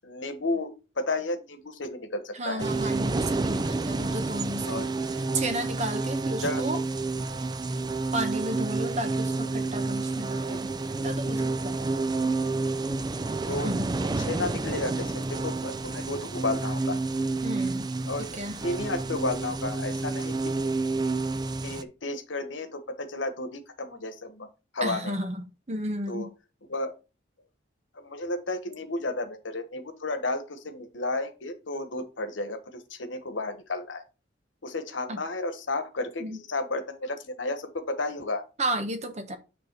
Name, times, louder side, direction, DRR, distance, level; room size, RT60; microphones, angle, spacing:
voice 1, 0.0-2.7 4.6-4.9 6.4-6.7 7.3-7.5 10.5-10.6 13.5-13.7 14.2-17.0 18.0-20.5 21.6-24.5 24.7-25.1 26.1-26.3 26.7-26.9 27.9-34.0 34.6-38.4, left 2 dB, 90° left, 1.2 m, -32 dB
voice 2, 2.3-6.8 8.1-10.7 11.0-11.8 13.6-14.0 17.4-17.9 18.2-18.6 24.8-26.3 35.1-35.2 36.2-36.4 38.6-39.4, right 1 dB, 40° right, 1.0 m, -33 dB
sound 1, 2.6-21.8, right 3 dB, 20° right, 0.4 m, -29 dB
9.0 x 3.4 x 4.5 m
head